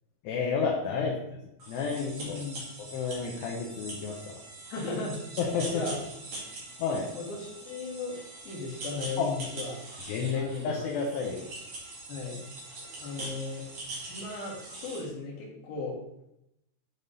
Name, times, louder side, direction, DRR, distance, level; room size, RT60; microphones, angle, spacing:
voice 1, 0.2-1.4 1.7-2.4 2.8-4.4 5.4-5.8 6.8-7.1 9.2-9.3 10.1-11.4, left 5 dB, 75° left, -1 dB, 2.8 m, -31 dB
sound 1, 1.6-15.0, right 2 dB, 45° right, 2.7 m, -43 dB
voice 2, 2.2-2.6 4.7-5.2 5.7-6.0 7.2-8.2 8.4-9.8 10.3-10.7 11.2-11.4 12.1-12.4 13.0-15.9, left 3 dB, 60° left, -4 dB, 3.3 m, -36 dB
9.1 x 3.5 x 4.0 m, 0.83 s
omnidirectional pair, 5.2 m